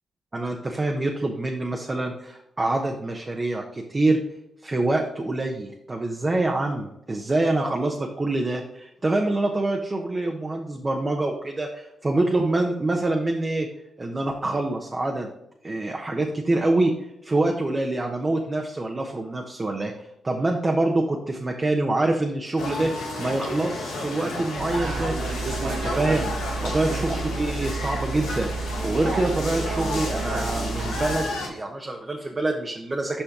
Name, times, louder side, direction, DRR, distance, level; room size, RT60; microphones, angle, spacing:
voice 1, 0.3-4.2 4.6-13.7 14.0-15.3 15.6-16.9 17.2-25.1 25.6-26.3 26.6-33.2, right 2 dB, 35° right, 1 dB, 1.0 m, -26 dB
sound 1, 22.6-31.5, left 2 dB, 90° left, 1.5 m, -32 dB
sound 2, 24.6-31.2, right 4 dB, 70° right, 1.0 m, -30 dB
7.2 x 5.0 x 3.7 m, 0.82 s
supercardioid pair, 45°, 0 cm